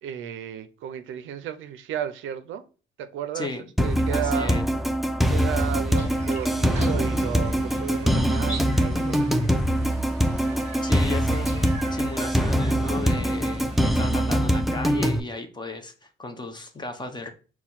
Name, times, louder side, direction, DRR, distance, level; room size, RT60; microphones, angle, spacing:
voice 1, 0.0-2.6 3.0-3.5 3.8-4.6 5.3-9.6, right 9 dB, 80° right, 0.5 m, -33 dB
voice 2, 3.3-3.7 4.1-4.7 10.8-17.3, left 3 dB, 20° left, 0.7 m, -35 dB
sound 1, 3.8-15.2, equal, ahead, 0.4 m, -23 dB
sound 2, 6.0-14.1, right 3 dB, 35° right, 0.9 m, -43 dB
4.2 x 2.2 x 3.8 m
cardioid pair, 90°, 20 cm